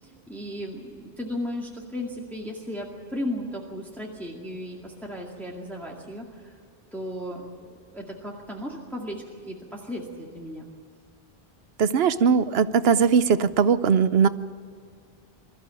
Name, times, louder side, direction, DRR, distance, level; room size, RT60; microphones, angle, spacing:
voice 1, 0.0-6.6 6.9-7.5 7.9-10.7, left 1 dB, ahead, -2 dB, 2.1 m, -35 dB
voice 2, 11.8-14.3, right 6 dB, 75° right, 13 dB, 1.0 m, -20 dB
22.5 x 13.5 x 9.1 m, 2.1 s
omnidirectional pair, 1.0 m